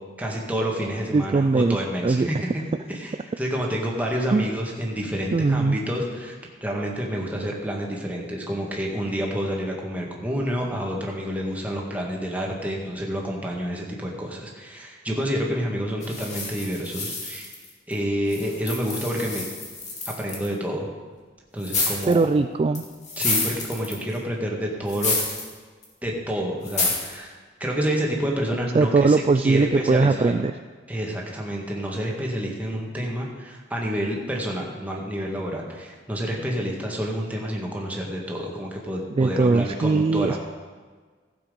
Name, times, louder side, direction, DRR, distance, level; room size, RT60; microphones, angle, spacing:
voice 1, 0.2-2.6 2.9-6.4 6.6-17.5 17.9-19.5 20.2-20.9 21.5-22.3 23.2-25.2 26.0-30.3 30.9-40.4, equal, 10° right, -2 dB, 1.9 m, -28 dB
voice 2, 1.1-1.8 2.0-2.3 4.3-4.5 5.3-5.8 22.1-22.8 28.7-30.5 39.2-40.4, right 3 dB, 35° right, 9 dB, 0.3 m, -20 dB
sound 1, 16.0-17.9 18.3-20.5 21.6-22.2 22.8-24.2 24.9-25.5 25.8-25.9 26.7-27.2, left 3 dB, 40° left, 2.4 m, -29 dB
15.5 x 7.4 x 5.3 m, 1.5 s
head